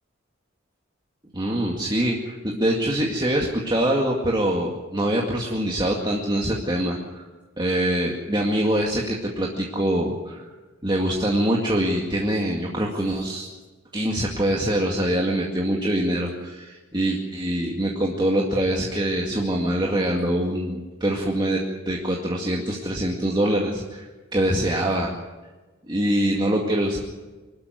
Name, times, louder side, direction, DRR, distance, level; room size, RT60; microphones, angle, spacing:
voice 1, 1.3-7.2 7.6-10.5 10.8-13.5 13.9-24.1 24.3-25.1 25.9-27.0, right 1 dB, 25° right, -1 dB, 2.1 m, -24 dB
24.5 x 12.5 x 9.5 m, 1.3 s
head